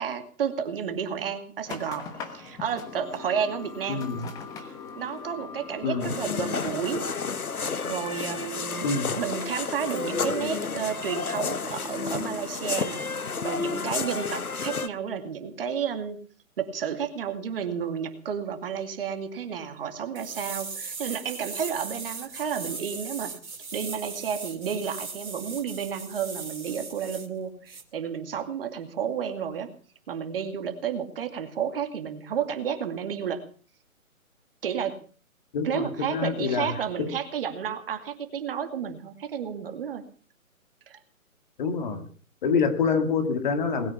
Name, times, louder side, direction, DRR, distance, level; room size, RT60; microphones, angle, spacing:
voice 1, 0.0-4.1 4.6-7.1 7.9-16.2 16.6-29.7 30.1-33.4 34.6-35.0 35.6-40.0 40.9-41.0, right 7 dB, 40° right, 7 dB, 2.4 m, -31 dB
sound 1, 1.6-7.4, left 5 dB, 10° left, 1.1 m, -41 dB
voice 2, 3.9-4.3 5.8-6.1 8.8-9.2 35.5-37.1 41.6-42.1 42.4-43.9, left 5 dB, 35° left, 8 dB, 2.0 m, -26 dB
sound 2, 6.0-14.9, left 5 dB, 90° left, 1.2 m, -31 dB
sound 3, 20.2-27.3 27.7-27.8, right 4 dB, 80° right, 3.0 m, -38 dB
20.5 x 9.1 x 7.1 m, 0.42 s
figure-of-eight pair, 145°, 42 cm